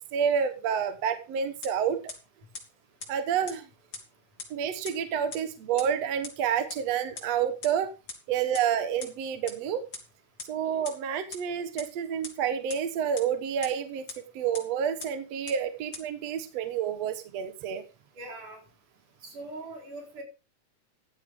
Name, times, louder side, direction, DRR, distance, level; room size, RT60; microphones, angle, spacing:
voice 1, 0.1-2.0 3.1-3.7 4.5-7.9 8.3-9.8 10.5-17.8, right 8 dB, 60° right, 9 dB, 2.2 m, -29 dB
sound 1, 1.6-1.7 2.1-2.2 2.5-2.6 3.0-3.1 3.5-3.6 3.9-4.0 4.4-4.5 4.9-5.0 5.3-5.4 5.8-5.9 6.2-6.3 6.7-6.8 7.2-7.3 7.6-7.7 8.1-8.2 8.5-8.6 9.0-9.1 9.5-9.6 9.9-10.0 10.4-10.5 10.9-11.0 11.3-11.4 11.8-11.9 12.2-12.3 12.7-12.8 13.2-13.3 13.6-13.7 14.1-14.2 14.5-14.6 15.0-15.1 15.5-15.6 15.9-16.0, left 4 dB, 40° left, 3.8 m, -37 dB
voice 2, 18.2-18.6 19.2-20.2, right 2 dB, 85° right, 1 dB, 5.8 m, -41 dB
15.0 x 11.5 x 3.6 m, 0.31 s
omnidirectional pair, 3.5 m